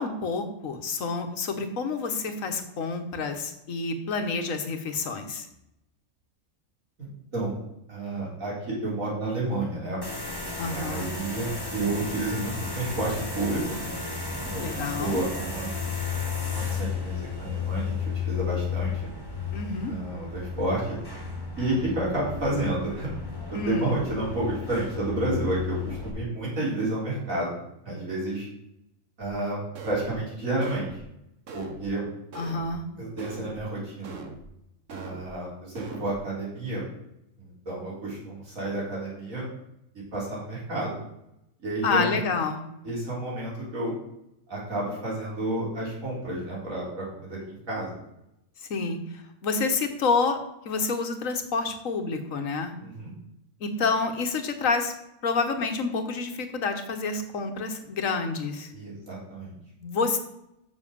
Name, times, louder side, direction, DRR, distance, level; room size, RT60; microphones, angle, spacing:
voice 1, 0.0-5.5 10.6-11.1 14.6-15.2 19.5-19.9 23.5-24.0 32.3-32.8 41.8-42.6 48.7-52.7 53.6-54.9 55.2-58.7 59.8-60.2, left 4 dB, 80° left, 6 dB, 1.6 m, -28 dB
voice 2, 7.0-7.6 7.9-10.0 10.6-13.8 14.5-14.6 15.0-15.8 16.5-18.9 19.9-21.0 21.6-23.1 23.5-27.6 27.8-28.5 29.2-31.0 31.5-32.1 33.0-34.2 34.9-36.8 37.4-39.5 39.9-40.9 41.6-42.2 42.8-43.9 44.5-47.9 52.8-53.1 58.7-59.5, right 2 dB, 85° right, -6 dB, 4.2 m, -30 dB
sound 1, 10.0-26.1, left 5 dB, 15° left, 1.9 m, -33 dB
sound 2, 29.7-30.2 30.6-31.0 31.5-31.9 32.3-32.7 33.2-33.6 34.0-34.5 34.9-35.3 35.7-36.2, right 4 dB, 70° right, 1.4 m, -41 dB
7.4 x 6.3 x 6.7 m, 0.83 s
omnidirectional pair, 1.4 m